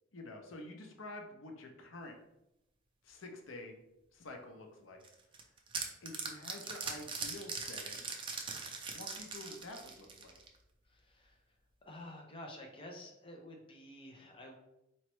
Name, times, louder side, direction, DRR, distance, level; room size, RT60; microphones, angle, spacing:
voice 1, 0.1-2.2 3.0-3.8 4.1-5.0 6.0-8.1 8.9-10.4, left 2 dB, 80° left, 3 dB, 0.7 m, -48 dB
sound 1, 5.0-10.6, right 4 dB, 25° right, 0.5 m, -41 dB
voice 2, 10.8-11.6 11.9-14.6, left 1 dB, 25° left, 1 dB, 0.6 m, -50 dB
4.3 x 3.1 x 3.0 m, 0.85 s
head